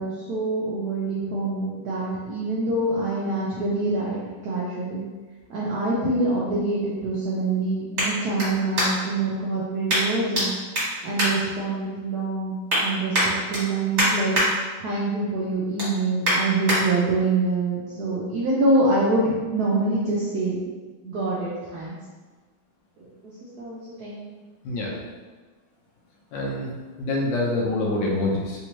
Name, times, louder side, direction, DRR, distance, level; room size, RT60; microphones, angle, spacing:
voice 1, 0.0-5.0 5.5-10.5 11.0-12.5 12.8-14.4 14.8-20.6 21.0-22.0 23.0-23.3 23.6-24.2, right 2 dB, 80° right, -6 dB, 0.8 m, -25 dB
sound 1, 5.1-9.2 9.9-10.4 10.7-12.0 12.4-12.8 13.1-14.5 14.9-15.1 15.5-16.8 17.3-17.4, equal, 35° right, 1.5 m, -26 dB
voice 2, 24.6-25.0 26.3-26.7 27.0-28.6, left 2 dB, 70° left, -3 dB, 1.2 m, -25 dB
3.5 x 2.6 x 3.0 m, 1.3 s
omnidirectional pair, 2.3 m